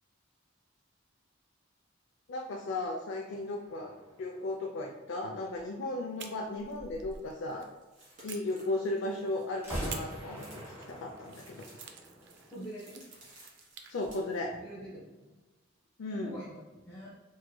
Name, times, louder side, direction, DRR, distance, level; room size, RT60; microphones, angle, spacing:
voice 1, 2.3-3.9 4.2-7.7 8.2-11.7 13.9-14.5 16.0-16.4, left 2 dB, 80° left, 1 dB, 0.4 m, -36 dB
voice 2, 3.5-3.8 12.5-13.0 14.5-15.4 16.1-17.1, right 1 dB, 15° left, -9 dB, 0.8 m, -46 dB
sound 1, 3.7-5.5 9.5-12.6, equal, 15° right, 1.3 m, -43 dB
sound 2, 5.5-5.6 6.5-14.4, right 1 dB, 40° right, 1.4 m, -56 dB
sound 3, 6.2-7.7 8.3-9.3 9.9-14.0, right 7 dB, 60° right, 0.4 m, -50 dB
4.5 x 3.1 x 2.2 m, 1.2 s
head